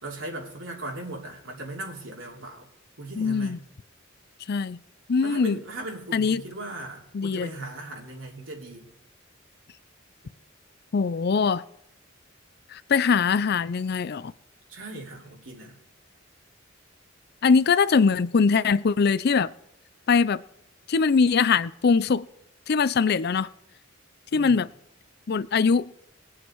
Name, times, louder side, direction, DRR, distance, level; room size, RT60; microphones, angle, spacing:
voice 1, 0.0-2.7 3.0-3.6 5.2-8.9 14.7-15.8 24.3-24.6, right 2 dB, 80° right, 3.1 m, -38 dB
voice 2, 3.2-3.6 4.5-4.8 5.1-5.6 6.1-6.4 7.1-7.5 10.9-11.6 12.7-14.3 17.4-19.5 20.1-20.4 20.9-22.3 22.7-23.5 24.3-24.7 25.3-25.9, left 5 dB, 50° left, 0.5 m, -22 dB
21.5 x 7.4 x 4.6 m
head